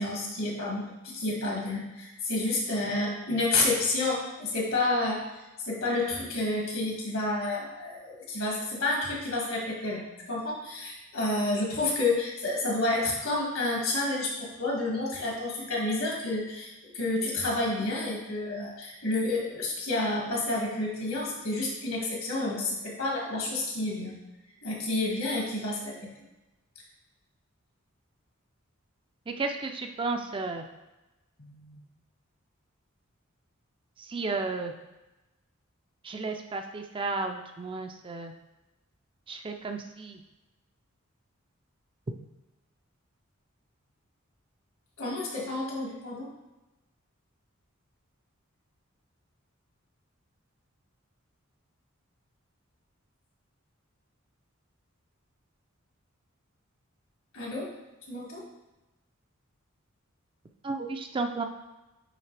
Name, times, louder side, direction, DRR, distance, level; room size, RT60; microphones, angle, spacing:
voice 1, 0.0-5.3 5.7-24.2 24.6-26.1 31.4-31.8 45.0-46.3 57.3-57.7 58.1-58.5, left 2 dB, 75° left, -3 dB, 2.0 m, -30 dB
voice 2, 29.3-30.6 34.1-34.7 36.0-38.3 39.3-40.2 60.6-61.5, right 3 dB, 25° right, 5 dB, 0.4 m, -33 dB
8.9 x 3.2 x 3.3 m, 1.0 s
head